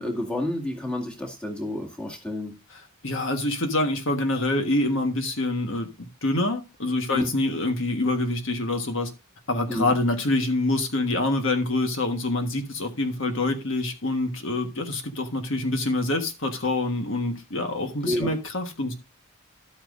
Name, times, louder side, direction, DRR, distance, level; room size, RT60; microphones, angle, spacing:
voice 1, 0.0-2.5 7.1-7.2 9.7-9.9 18.0-18.3, left 1 dB, 5° left, 2.0 m, -29 dB
voice 2, 2.7-9.1 9.5-18.9, left 2 dB, 60° left, 1.5 m, -26 dB
12.0 x 8.7 x 2.6 m
head